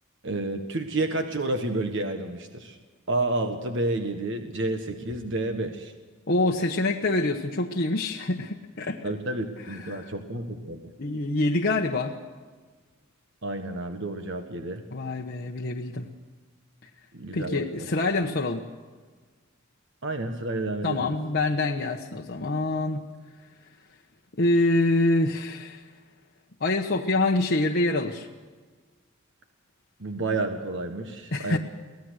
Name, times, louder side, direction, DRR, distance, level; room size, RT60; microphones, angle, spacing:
voice 1, 0.2-2.8 3.1-5.9 9.0-10.9 13.4-14.8 17.1-17.7 20.0-21.1 30.0-31.6, right 2 dB, 65° right, 6 dB, 1.5 m, -30 dB
voice 2, 6.3-9.1 9.6-10.1 11.0-12.2 14.9-16.1 17.3-18.6 20.8-23.0 24.3-25.8 26.6-28.3 31.3-31.6, left 2 dB, 50° left, 0 dB, 1.1 m, -26 dB
24.0 x 17.5 x 6.5 m, 1.5 s
head